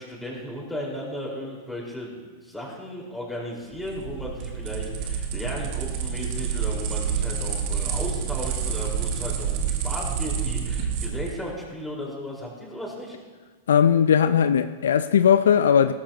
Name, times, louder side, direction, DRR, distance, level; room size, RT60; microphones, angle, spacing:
voice 1, 0.0-13.2, equal, 5° left, -4 dB, 4.8 m, -35 dB
sound 1, 3.7-11.4, right 7 dB, 50° right, 1.8 m, -28 dB
voice 2, 13.7-15.9, left 8 dB, 75° left, 12 dB, 0.5 m, -18 dB
17.0 x 13.5 x 3.0 m, 1.4 s
hypercardioid pair, 105°, 0 cm